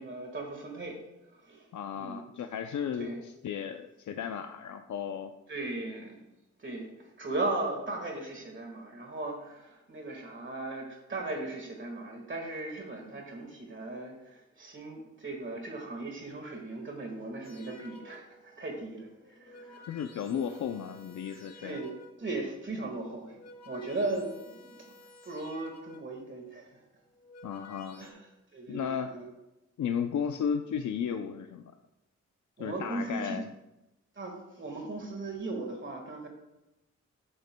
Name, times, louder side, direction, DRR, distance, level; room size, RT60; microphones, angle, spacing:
voice 1, 0.0-1.7 2.0-2.2 3.0-3.2 5.5-6.2 6.6-19.9 20.3-20.6 21.3-21.9 22.2-23.4 23.6-24.9 25.2-26.8 28.0-29.3 32.6-33.4 34.1-36.3, right 2 dB, 40° right, 2 dB, 1.7 m, -38 dB
voice 2, 1.7-5.3 19.9-21.8 27.4-28.0 28.7-29.1 29.8-31.7 32.6-33.5, left 7 dB, 85° left, 6 dB, 0.5 m, -34 dB
sound 1, 17.4-18.5 19.2-22.4 23.1-26.3 27.0-28.1, left 2 dB, 60° left, 1.2 m, -53 dB
13.0 x 9.3 x 2.2 m, 0.95 s
wide cardioid pair, 155°, 29 cm